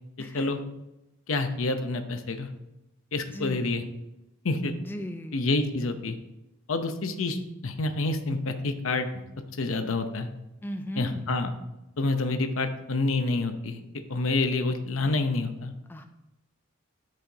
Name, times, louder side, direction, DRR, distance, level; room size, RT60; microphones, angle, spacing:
voice 1, 1.3-2.5 3.1-3.8 4.4-4.7 5.3-6.2 6.7-9.1 9.6-10.3 11.0-11.5 12.0-13.8 14.1-15.7, left 3 dB, 80° left, 7 dB, 0.8 m, -28 dB
voice 2, 3.3-3.6 4.9-5.3 10.6-11.2 15.9-16.0, equal, 10° left, 7 dB, 0.3 m, -36 dB
13.0 x 5.0 x 2.8 m, 0.93 s
head